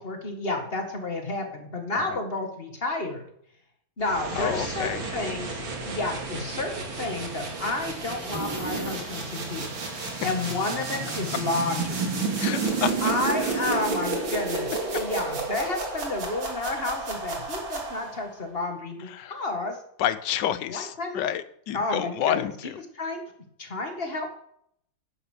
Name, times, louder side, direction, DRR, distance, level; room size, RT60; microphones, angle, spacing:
voice 1, 0.0-3.2 4.0-9.8 10.2-12.1 13.0-19.8 20.7-21.3 21.7-22.5 23.0-23.2 23.6-24.3, left 2 dB, 30° left, 4 dB, 1.9 m, -31 dB
sound 1, 4.0-18.3, right 3 dB, 85° right, 3.2 m, -31 dB
voice 2, 4.3-5.0 9.9-10.3 12.4-13.0 13.4-13.5 19.1-19.3 20.0-22.8, left 11 dB, 70° left, 14 dB, 1.3 m, -29 dB
sound 2, 8.3-9.6, right 2 dB, 15° right, 1.0 m, -34 dB
10.0 x 8.6 x 6.6 m, 0.70 s
omnidirectional pair, 2.1 m